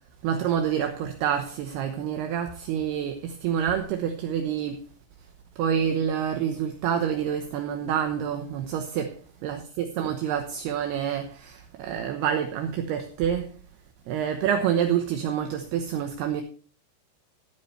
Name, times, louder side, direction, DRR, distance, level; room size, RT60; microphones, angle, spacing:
voice 1, 0.2-4.8 5.6-9.2 9.4-13.5 14.1-16.4, right 8 dB, 75° right, 2.6 m, -27 dB
15.5 x 9.6 x 3.2 m
omnidirectional pair, 5.7 m